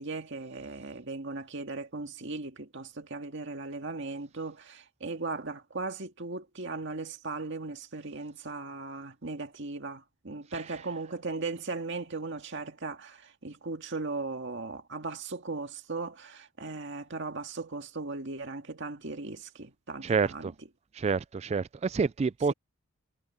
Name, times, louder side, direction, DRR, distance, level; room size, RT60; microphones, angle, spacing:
voice 1, 0.0-20.5, right 3 dB, 60° right, 2.0 m, -37 dB
voice 2, 20.0-20.5 20.9-22.5, right 5 dB, 30° right, 0.3 m, -28 dB
head